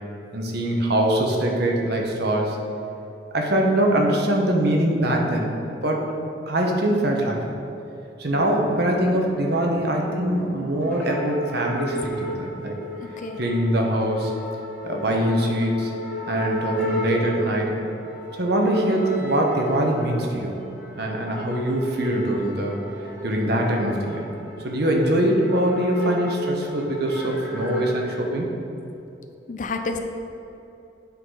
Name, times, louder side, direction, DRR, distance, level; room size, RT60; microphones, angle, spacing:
voice 1, 0.3-2.6 3.3-5.5 5.8-6.0 6.5-7.4 8.2-12.8 13.4-14.3 14.8-15.9 16.3-17.7 18.4-20.5 21.0-22.8 23.2-24.2 24.6-28.5, right 1 dB, 55° right, 0 dB, 1.0 m, -23 dB
sound 1, 8.3-28.0, equal, 10° left, 1.5 m, -34 dB
voice 2, 13.0-13.4 29.5-30.0, left 3 dB, 40° left, 5 dB, 0.4 m, -30 dB
8.6 x 3.9 x 4.8 m, 2.8 s
head